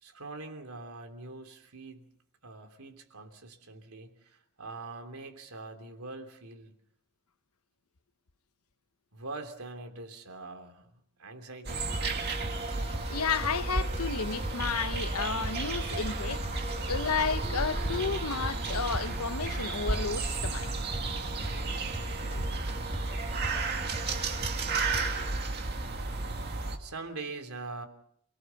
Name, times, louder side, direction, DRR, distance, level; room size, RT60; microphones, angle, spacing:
voice 1, 0.0-2.1 2.4-6.7 9.1-10.9 11.2-12.5 26.8-27.9, right 3 dB, 80° right, 3.1 m, -43 dB
sound 1, 11.6-26.8, right 3 dB, 50° right, 2.1 m, -33 dB
sound 2, 11.7-25.3, right 1 dB, 30° right, 4.4 m, -39 dB
voice 2, 12.9-20.7, left 5 dB, 85° left, 0.9 m, -32 dB
28.5 x 18.5 x 5.8 m
head